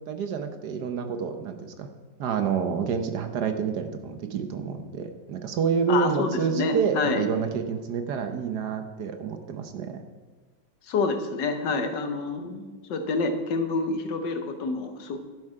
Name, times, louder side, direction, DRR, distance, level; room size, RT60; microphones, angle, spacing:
voice 1, 0.1-1.9 2.2-10.0, right 6 dB, 70° right, 7 dB, 1.5 m, -28 dB
voice 2, 5.9-7.3 10.9-15.2, left 3 dB, 80° left, 7 dB, 1.7 m, -28 dB
11.0 x 8.4 x 4.9 m, 1.4 s
omnidirectional pair, 1.9 m